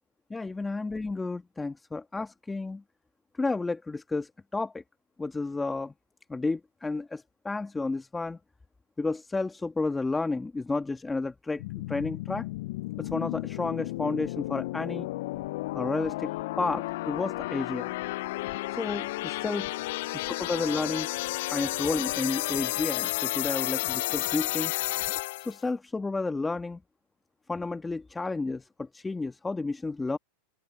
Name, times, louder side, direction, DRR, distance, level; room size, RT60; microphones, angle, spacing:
voice 1, 0.3-2.8 3.4-4.8 5.2-5.9 6.3-8.4 9.0-11.6 11.9-12.4 13.0-15.1 15.7-17.9 18.7-19.7 20.5-21.1 21.5-24.7 25.4-26.8 27.5-30.2, left 3 dB, 10° left, 1.5 m, -31 dB
sound 1, 11.6-25.6, left 18 dB, 65° left, 0.4 m, -32 dB
hypercardioid pair, 115°, 0 cm